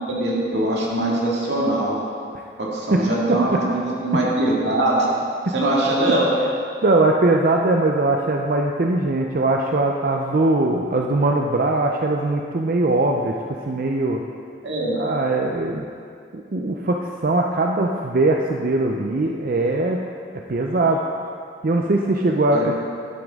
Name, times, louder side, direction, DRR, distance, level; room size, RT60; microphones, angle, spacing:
voice 1, 0.0-2.0 2.6-5.1 5.5-6.3 14.6-15.0 22.5-22.7, right 1 dB, 85° right, -4 dB, 2.0 m, -22 dB
voice 2, 2.9-3.6 6.8-13.4 13.7-14.2 14.9-15.9 16.3-20.0 20.5-21.0 21.6-22.7, right 2 dB, 55° right, 1 dB, 0.5 m, -21 dB
11.0 x 9.1 x 3.6 m, 2.3 s
head